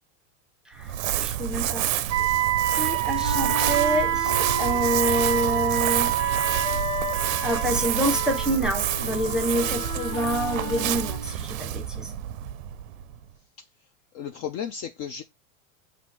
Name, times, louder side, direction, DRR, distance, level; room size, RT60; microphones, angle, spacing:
Crumpling crinkling, 0.8-13.2, right 11 dB, 80° right, 0.6 m, -28 dB
voice 1, 1.2-1.9 2.2-2.3 2.8-6.2 7.4-12.1, equal, ahead, 0.8 m, -27 dB
Wind instrument woodwind instrument, 2.1-8.5, right 14 dB, 40° right, 0.5 m, -27 dB
Wind instrument woodwind instrument 2, 3.2-11.4, left 3 dB, 20° left, 1.2 m, -35 dB
voice 2, 14.2-15.2, left 8 dB, 40° left, 0.4 m, -33 dB
6.0 x 2.5 x 3.1 m
supercardioid pair, 125°, 40 cm